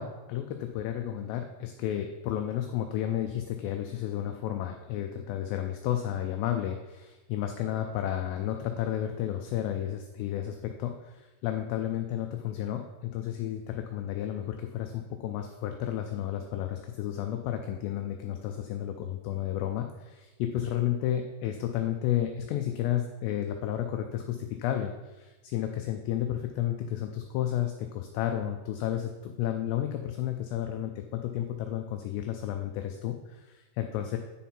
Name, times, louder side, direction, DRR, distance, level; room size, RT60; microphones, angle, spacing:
voice 1, 0.0-34.2, left 11 dB, 85° left, 5 dB, 2.5 m, -32 dB
9.1 x 5.5 x 4.3 m, 1.1 s
omnidirectional pair, 5.4 m